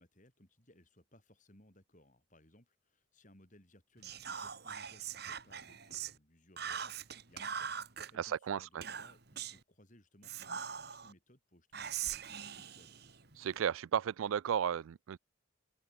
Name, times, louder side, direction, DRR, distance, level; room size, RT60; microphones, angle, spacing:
voice 1, 0.0-13.2, left 1 dB, 35° left, 6.0 m, -64 dB
Whispering, 4.0-6.2 6.6-8.1 8.8-9.6 10.2-11.1 11.7-13.6, right 8 dB, 50° right, 1.9 m, -42 dB
voice 2, 8.2-8.8 13.4-15.2, right 8 dB, 75° right, 0.3 m, -34 dB
open air
head